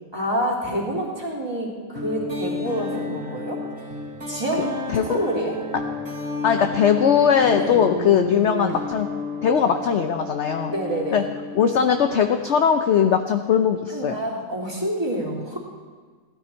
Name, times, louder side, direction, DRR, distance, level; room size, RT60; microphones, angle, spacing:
voice 1, 0.1-3.6 4.3-5.6 7.5-7.8 10.7-11.2 13.9-15.6, right 1 dB, 15° right, -4 dB, 2.8 m, -27 dB
sound 1, 2.0-12.5, left 2 dB, 35° right, 3.1 m, -32 dB
voice 2, 6.4-9.1 9.4-10.7 11.1-11.2 11.5-14.2, left 7 dB, 60° left, 6 dB, 0.7 m, -20 dB
16.0 x 12.5 x 4.4 m, 1.5 s
omnidirectional pair, 1.9 m